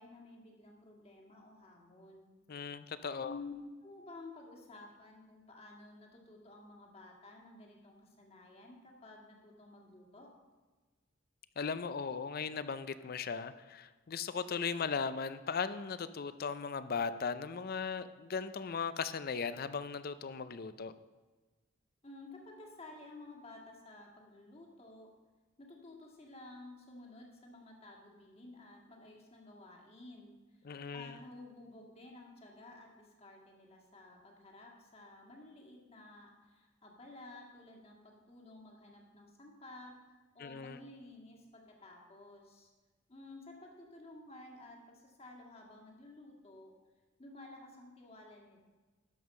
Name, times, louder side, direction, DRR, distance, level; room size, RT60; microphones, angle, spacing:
voice 1, 0.0-2.4 3.2-3.5 3.8-10.3 22.0-25.1 25.6-30.7 30.9-42.7 43.1-46.7 47.2-48.6, left 2 dB, 30° left, 1 dB, 1.8 m, -53 dB
voice 2, 2.5-3.4 11.6-20.9 30.6-31.2 40.4-40.8, left 5 dB, 50° left, 13 dB, 0.5 m, -37 dB
12.0 x 5.5 x 6.5 m, 1.3 s
head